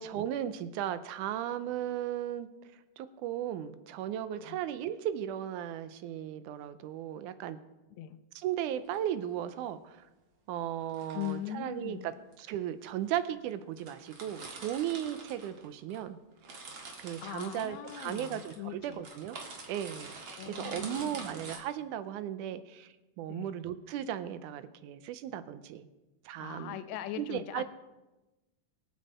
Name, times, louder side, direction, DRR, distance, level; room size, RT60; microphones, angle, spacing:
voice 1, 0.0-2.5 3.0-7.6 8.4-10.0 10.5-16.2 17.0-19.4 19.7-25.9 26.3-26.8 27.2-27.6, right 11 dB, 85° right, 13 dB, 2.2 m, -36 dB
sound 1, 8.7-9.0 10.8-11.5 12.3-12.4 13.2-13.3 13.5-13.6 13.8-16.0 16.3-21.6, right 3 dB, 45° right, 2.2 m, -46 dB
voice 2, 11.1-12.1 17.2-19.0 20.3-21.5 23.3-23.6 26.4-27.6, left 12 dB, 75° left, 11 dB, 1.9 m, -41 dB
23.0 x 7.7 x 4.3 m, 1.1 s
omnidirectional pair, 3.5 m